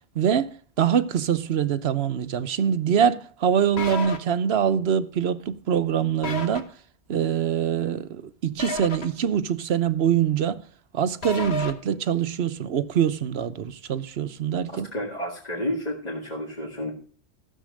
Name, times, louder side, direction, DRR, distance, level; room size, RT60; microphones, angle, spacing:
voice 1, 0.1-6.7 7.1-10.6 10.9-14.9, right 8 dB, 65° right, 1.0 m, -24 dB
sound 1, 3.8-4.2 6.2-6.6 8.6-9.0 11.2-11.7, left 2 dB, 60° left, 1.8 m, -30 dB
voice 2, 14.7-16.9, left 1 dB, 35° left, 2.1 m, -31 dB
14.0 x 7.3 x 6.3 m
omnidirectional pair, 1.2 m